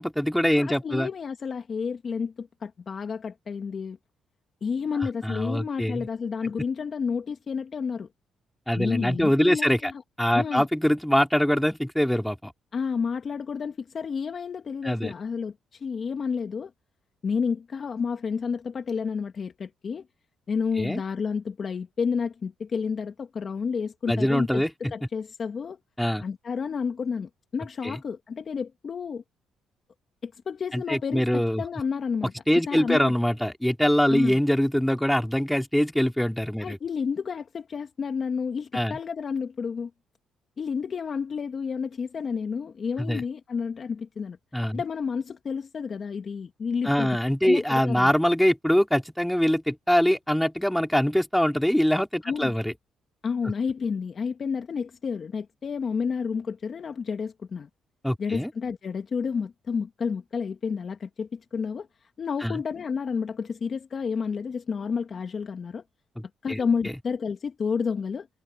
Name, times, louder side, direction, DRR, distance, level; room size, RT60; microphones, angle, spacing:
voice 1, 0.0-1.1 5.2-6.1 8.7-9.9 10.2-12.5 14.8-15.1 20.8-21.0 24.1-24.9 26.0-26.2 27.8-28.0 30.7-31.6 32.5-36.8 38.7-39.0 43.1-43.2 44.5-44.8 46.8-52.7 58.0-58.5 62.4-62.6 66.2-66.3 66.5-66.6, equal, 5° left, 3.9 m, -23 dB
voice 2, 0.5-4.0 4.6-8.1 8.8-10.0 10.3-10.7 12.7-16.7 17.2-20.1 20.5-25.8 26.2-29.2 30.2-32.3 32.7-33.1 34.1-34.4 36.6-39.9 40.6-48.1 52.2-52.5 53.2-57.7 58.2-61.9 62.2-65.8 66.4-68.3, left 6 dB, 45° left, 1.7 m, -30 dB
cardioid pair, 90°, 0 cm